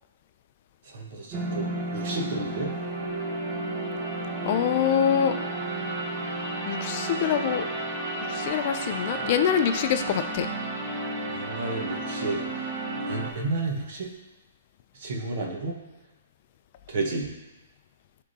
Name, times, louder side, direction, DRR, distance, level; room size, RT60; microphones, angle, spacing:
voice 1, 0.9-1.7 1.9-2.7 11.3-12.4 13.1-14.1 15.0-15.8 16.9-17.3, right 3 dB, 55° right, -1 dB, 1.3 m, -31 dB
sound 1, 1.3-13.3, right 2 dB, 35° right, 1.2 m, -32 dB
voice 2, 4.4-5.3 6.7-7.7 8.3-10.5, left 9 dB, 45° left, 8 dB, 0.4 m, -25 dB
10.5 x 3.6 x 2.8 m, 1.1 s
hypercardioid pair, 150°, 0 cm